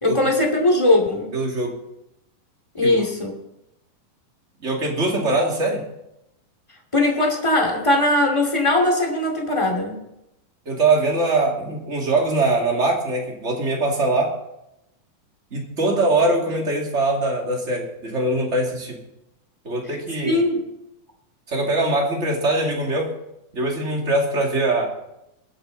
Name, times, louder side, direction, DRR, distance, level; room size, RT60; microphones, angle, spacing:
voice 1, 0.0-1.3 2.7-3.3 6.9-10.0 20.2-20.6, left 1 dB, 10° left, 1 dB, 1.6 m, -20 dB
voice 2, 1.3-1.8 2.8-3.0 4.6-5.8 10.7-14.3 15.5-19.0 19.6-20.4 21.5-23.1 23.5-24.9, right 2 dB, 25° right, 0 dB, 2.2 m, -22 dB
21.5 x 8.7 x 4.0 m, 0.84 s
omnidirectional pair, 4.1 m